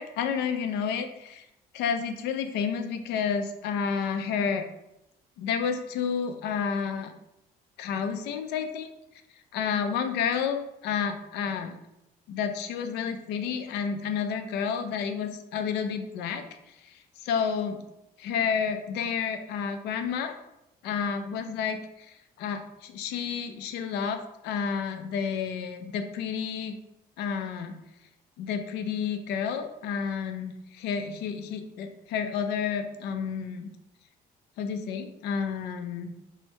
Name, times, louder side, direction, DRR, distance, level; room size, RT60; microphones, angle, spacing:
voice 1, 0.0-1.5 1.7-4.6 5.4-7.1 7.8-8.8 9.5-11.8 12.3-17.8 18.2-20.4 20.8-26.7 27.2-27.8 28.4-33.7 34.6-36.1, left 6 dB, 80° left, 7 dB, 0.5 m, -30 dB
4.4 x 2.1 x 4.5 m, 0.85 s
cardioid pair, 110°, 17 cm